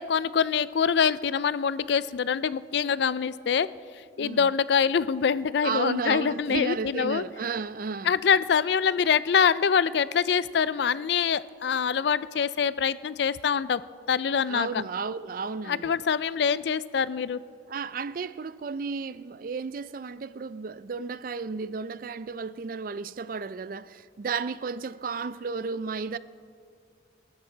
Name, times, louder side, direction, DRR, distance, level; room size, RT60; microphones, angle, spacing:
voice 1, 0.0-3.7 4.2-7.2 8.0-13.8 14.1-14.8 15.7-17.4, left 6 dB, 60° left, 0.4 m, -25 dB
voice 2, 4.2-4.5 5.6-8.1 14.5-16.0 17.7-26.2, right 5 dB, 45° right, 0.4 m, -33 dB
26.0 x 13.5 x 3.9 m
head